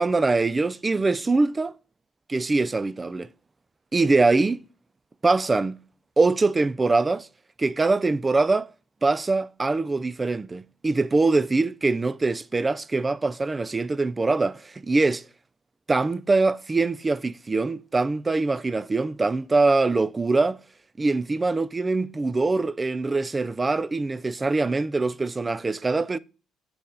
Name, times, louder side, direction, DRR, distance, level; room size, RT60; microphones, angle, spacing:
voice 1, 0.0-1.7 2.3-3.3 3.9-4.6 5.2-5.8 6.2-7.3 7.6-8.7 9.0-15.2 15.9-20.6 21.0-26.2, right 3 dB, 20° right, 0.3 m, -23 dB
8.6 x 4.2 x 3.8 m
cardioid pair, 110°, 0 cm